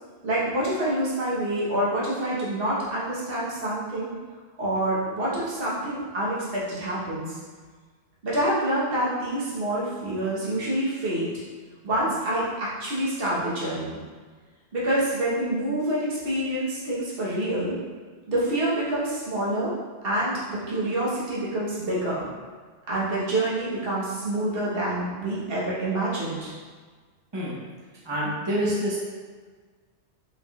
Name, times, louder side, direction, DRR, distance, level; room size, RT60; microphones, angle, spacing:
voice 1, 0.2-4.1 4.6-7.3 8.2-11.3 11.8-14.0 14.7-17.8 18.3-19.7 20.0-22.3 22.9-26.5, right 1 dB, 55° right, -7 dB, 1.3 m, -27 dB
voice 2, 28.0-29.0, equal, 25° right, -7 dB, 1.0 m, -26 dB
5.1 x 3.5 x 2.4 m, 1.5 s
omnidirectional pair, 1.2 m